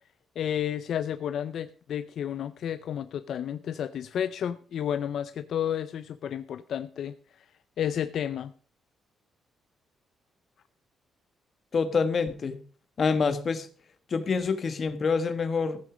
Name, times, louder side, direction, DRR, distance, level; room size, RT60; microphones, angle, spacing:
voice 1, 0.4-7.5 7.8-8.5, left 9 dB, 60° left, 12 dB, 0.5 m, -31 dB
voice 2, 11.7-12.6 13.0-13.7 14.1-15.8, left 5 dB, 40° left, 10 dB, 1.4 m, -26 dB
15.0 x 9.3 x 5.0 m, 0.42 s
cardioid pair, 140°, 0 cm